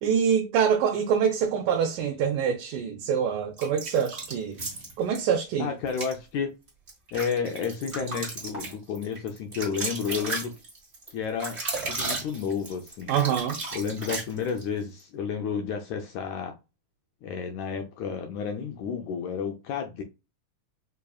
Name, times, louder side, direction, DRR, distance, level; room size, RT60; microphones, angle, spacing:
voice 1, 0.0-4.7 5.0-5.7 13.1-13.6, right 7 dB, 80° right, 2.0 m, -25 dB
sound 1, 3.6-5.2 5.9-6.1 6.7-14.7, right 3 dB, 45° right, 0.8 m, -34 dB
voice 2, 5.6-6.6 7.1-10.5 11.1-11.6 11.9-13.1 13.7-16.6 17.2-20.0, left 6 dB, 80° left, 1.6 m, -31 dB
5.3 x 2.6 x 2.3 m
omnidirectional pair, 3.9 m